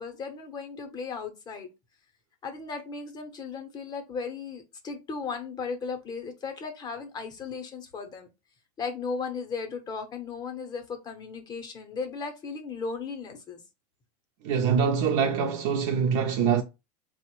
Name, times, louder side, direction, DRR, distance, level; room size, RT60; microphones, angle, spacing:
voice 1, 0.0-1.7 2.4-8.3 8.8-13.6, left 5 dB, 20° left, 0.6 m, -36 dB
voice 2, 14.4-16.6, right 6 dB, 55° right, 0.5 m, -24 dB
3.9 x 2.0 x 2.9 m
supercardioid pair, 155°, 20 cm